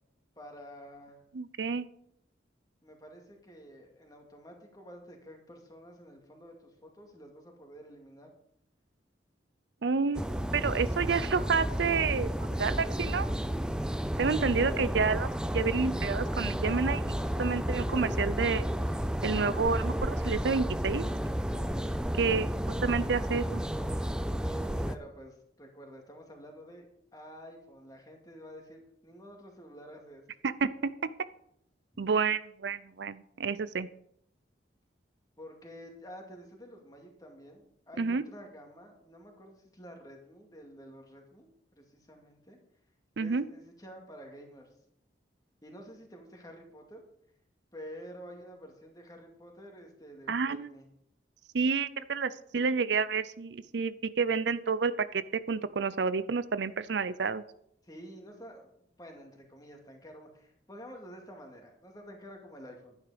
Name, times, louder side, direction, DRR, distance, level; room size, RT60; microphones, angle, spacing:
voice 1, 0.4-1.2 2.8-8.3 24.4-26.9 27.1-30.2 35.4-42.6 43.2-44.7 45.6-47.1 47.7-50.9 57.8-58.7 59.0-63.0, equal, 20° left, 2 dB, 2.3 m, -49 dB
voice 2, 1.3-1.9 9.8-13.3 14.2-18.6 19.2-21.0 22.2-22.5 22.8-23.6 30.4-31.1 32.0-33.9 38.0-38.2 43.2-43.4 50.3-50.7 51.5-57.4, right 5 dB, 70° right, 15 dB, 0.5 m, -29 dB
sound 1, 10.1-24.9, equal, 5° right, 0.5 m, -32 dB
12.0 x 9.7 x 5.1 m, 0.74 s
head